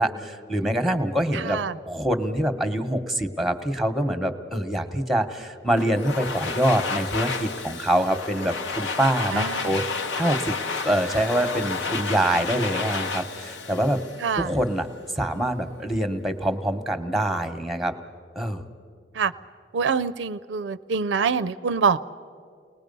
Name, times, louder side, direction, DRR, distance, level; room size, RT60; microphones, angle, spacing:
voice 1, 0.0-1.6 1.9-9.8 10.2-10.6 10.8-14.0 14.4-14.9 15.2-17.9 18.4-18.6, right 1 dB, ahead, 9 dB, 0.9 m, -25 dB
voice 2, 1.3-1.8 9.3-9.8 14.2-14.5 19.1-19.3 19.7-22.0, right 5 dB, 75° right, 15 dB, 0.4 m, -25 dB
Domestic sounds home sounds, 5.8-14.7, left 4 dB, 85° left, 0.9 m, -31 dB
29.5 x 20.0 x 5.3 m, 2.4 s
head